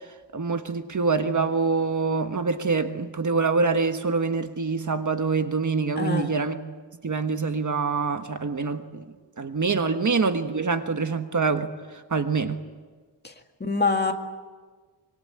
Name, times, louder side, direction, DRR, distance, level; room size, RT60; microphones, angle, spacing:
voice 1, 0.3-6.6 7.0-9.0 9.4-11.7 12.1-12.6, right 4 dB, 45° right, 7 dB, 1.4 m, -25 dB
voice 2, 5.9-6.3 9.9-10.0 13.2-13.3 13.6-14.1, left 4 dB, 25° left, 4 dB, 2.0 m, -25 dB
25.0 x 23.5 x 8.8 m, 1.4 s
wide cardioid pair, 155°, 43 cm